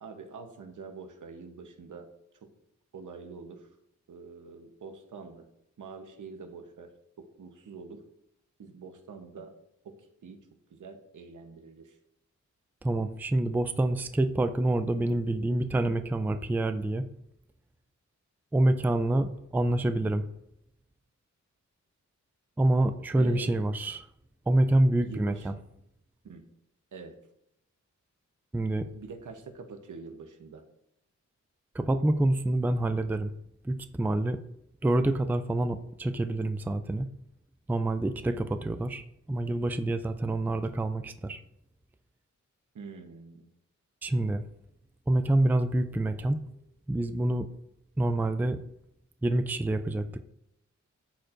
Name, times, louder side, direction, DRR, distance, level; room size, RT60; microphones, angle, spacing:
voice 1, 0.0-2.1 2.4-2.5 2.9-3.7 4.1-5.5 5.8-8.0 8.6-9.5 9.8-12.0 23.2-23.6 25.0-25.5 26.2-26.5 26.9-27.2 28.9-30.6 38.3-38.6 42.7-43.5, right 4 dB, 85° right, 5 dB, 1.0 m, -45 dB
voice 2, 12.8-17.1 18.5-20.3 22.6-24.1 24.5-25.5 28.5-28.9 31.7-33.3 33.6-34.4 34.8-37.1 37.7-41.4 44.0-44.4 45.1-46.4 46.9-47.5 48.0-48.6 49.2-50.2, right 1 dB, 5° right, 10 dB, 0.3 m, -27 dB
13.0 x 4.4 x 2.6 m, 0.79 s
wide cardioid pair, 120°, 30 cm